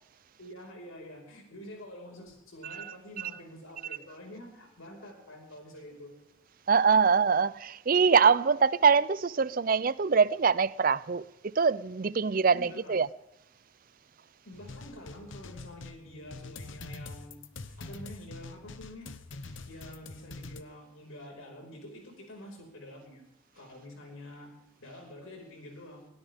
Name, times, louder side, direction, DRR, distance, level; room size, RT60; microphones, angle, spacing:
voice 1, 0.4-6.1 12.5-12.9 14.4-17.4 17.8-19.1 19.7-23.2 23.5-24.5 24.8-26.1, left 1 dB, 85° left, 5.4 m, -47 dB
voice 2, 6.7-13.1, right 5 dB, 45° right, 0.5 m, -24 dB
sound 1, 14.5-20.6, left 3 dB, 70° left, 1.0 m, -45 dB
21.5 x 17.5 x 3.6 m
head